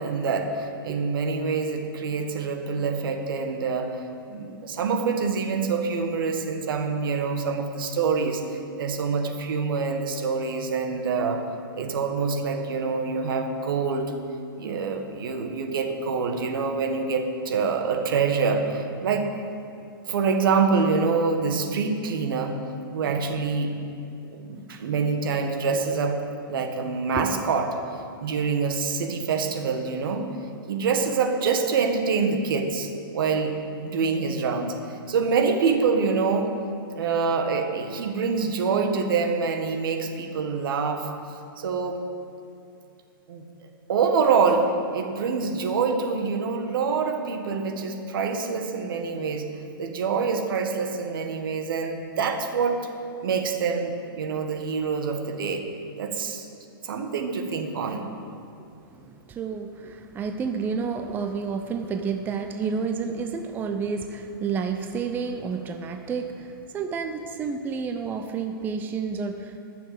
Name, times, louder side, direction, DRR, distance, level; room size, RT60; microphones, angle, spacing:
voice 1, 0.0-4.0 4.3-8.4 8.8-11.4 11.7-14.1 14.6-19.3 20.1-22.6 22.9-23.8 24.3-26.2 26.5-27.8 28.2-30.3 30.7-36.5 36.9-41.1 41.6-42.0 43.3-43.4 43.9-49.5 49.8-52.9 53.2-55.6 56.0-56.5 56.8-58.1, right 5 dB, 65° right, 5 dB, 1.5 m, -26 dB
voice 2, 58.9-69.6, right 5 dB, 15° right, 6 dB, 0.5 m, -30 dB
13.5 x 6.9 x 7.5 m, 2.6 s
hypercardioid pair, 140°, 12 cm